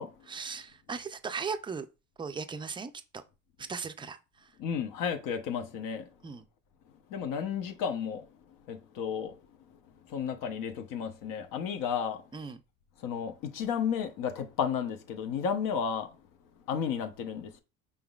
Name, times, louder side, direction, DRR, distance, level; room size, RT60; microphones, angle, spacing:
voice 1, 0.3-1.9 2.2-3.2 3.6-4.5 6.2-6.4 12.3-12.6, right 5 dB, 15° right, 0.4 m, -38 dB
voice 2, 4.6-6.1 7.1-9.4 10.0-12.5 13.0-16.2 16.7-17.6, left 7 dB, 75° left, 0.9 m, -33 dB
5.3 x 3.6 x 2.4 m
cardioid pair, 105°, 33 cm